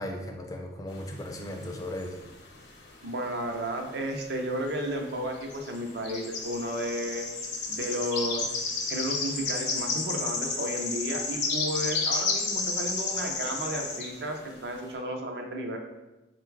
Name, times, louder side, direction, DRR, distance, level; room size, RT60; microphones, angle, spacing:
voice 1, 0.0-2.2, left 1 dB, 20° left, 2 dB, 0.4 m, -36 dB
sound 1, 1.0-2.6 2.9-4.1 4.4-4.6 5.3-14.1, left 4 dB, 85° left, 0.8 m, -31 dB
voice 2, 3.0-7.3 7.7-8.5 8.9-15.8, right 1 dB, 65° right, 3 dB, 0.5 m, -33 dB
3.8 x 2.3 x 4.5 m, 1.0 s
head